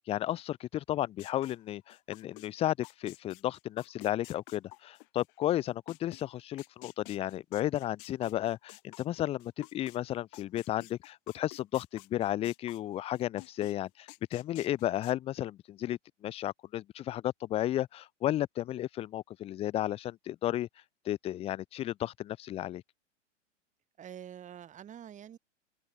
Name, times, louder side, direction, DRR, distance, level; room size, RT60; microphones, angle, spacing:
voice 1, 0.0-20.7 21.1-22.8, left 13 dB, 15° left, 0.5 m, -33 dB
sound 1, 1.2-2.5 2.8-6.2 6.6-10.0 10.3-12.9 13.1-13.7 14.1-15.1, left 26 dB, 45° left, 3.4 m, -51 dB
voice 2, 24.0-25.4, right 9 dB, 20° right, 2.1 m, -46 dB
open air
figure-of-eight pair, 100°, 37 cm